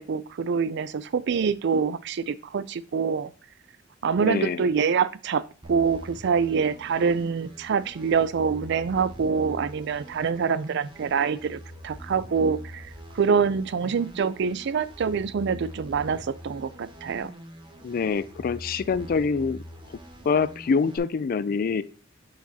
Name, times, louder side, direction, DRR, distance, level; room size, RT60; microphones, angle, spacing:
voice 1, 0.0-3.3 4.0-12.9 13.1-17.3, right 6 dB, 60° right, 16 dB, 0.4 m, -25 dB
voice 2, 4.2-4.7 17.8-19.6 20.3-21.8, left 5 dB, 50° left, 16 dB, 0.3 m, -25 dB
sound 1, 5.6-21.0, equal, 25° right, 1.0 m, -44 dB
7.1 x 5.0 x 2.8 m, 0.37 s
head